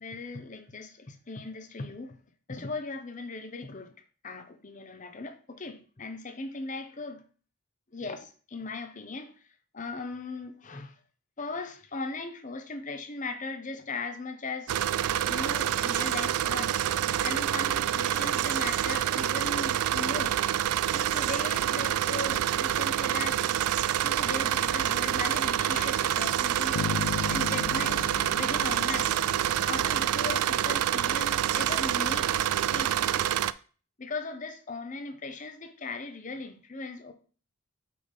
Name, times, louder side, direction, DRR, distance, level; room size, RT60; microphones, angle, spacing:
voice 1, 0.0-2.2 2.5-3.9 4.2-7.2 7.9-9.4 9.7-10.9 11.4-14.7 15.3-16.8 17.2-20.4 20.9-23.5 24.0-26.8 27.3-29.3 29.7-32.3 32.7-33.4 34.0-37.1, left 3 dB, 35° left, 0.7 m, -38 dB
sound 1, 14.7-33.5, right 11 dB, 80° right, 0.3 m, -27 dB
sound 2, 26.8-30.2, left 6 dB, 75° left, 0.5 m, -36 dB
5.7 x 5.0 x 4.0 m
head